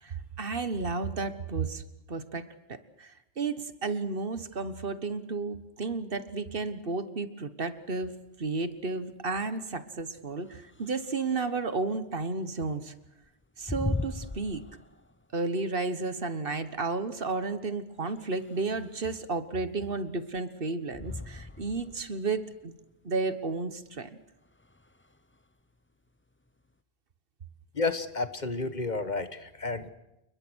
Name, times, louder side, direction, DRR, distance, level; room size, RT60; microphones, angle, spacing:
voice 1, 0.0-1.8 2.1-8.1 8.4-12.9 13.6-14.6 15.3-22.7 23.0-24.1, right 3 dB, 65° right, 12 dB, 1.5 m, -32 dB
sound 1, 7.7-26.8, left 2 dB, 15° left, 0.7 m, -42 dB
voice 2, 27.8-29.9, left 3 dB, 45° left, 11 dB, 1.5 m, -31 dB
29.5 x 21.5 x 6.3 m, 0.90 s
omnidirectional pair, 1.0 m